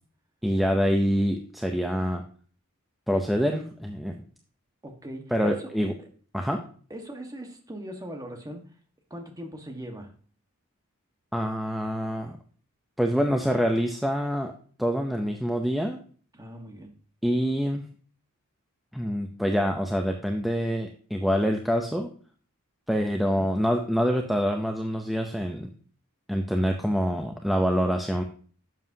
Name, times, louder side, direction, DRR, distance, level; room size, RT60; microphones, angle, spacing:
voice 1, 0.4-2.2 3.1-4.2 5.3-5.9 6.3-6.6 11.3-12.4 13.0-14.5 14.8-16.0 17.2-17.8 18.9-22.1 22.9-25.7 26.3-28.2, equal, ahead, 3 dB, 0.6 m, -26 dB
voice 2, 4.8-5.7 6.9-8.7 9.1-10.1 16.3-16.9 23.2-23.5, equal, 15° right, 4 dB, 1.5 m, -40 dB
11.0 x 7.2 x 2.8 m, 0.44 s
head